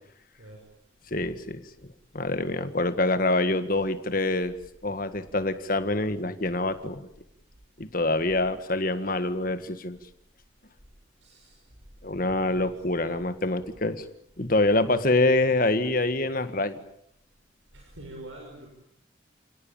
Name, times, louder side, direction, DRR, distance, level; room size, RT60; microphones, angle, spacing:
voice 1, 1.1-1.6 2.1-4.5 4.8-7.1 7.8-10.0 12.0-14.0 14.4-16.8, left 2 dB, 45° left, 10 dB, 1.7 m, -25 dB
voice 2, 11.2-11.6 12.1-12.7 13.1-13.3 17.7-18.7, right 1 dB, 80° right, 0 dB, 6.2 m, -45 dB
29.5 x 18.0 x 8.9 m, 0.78 s
head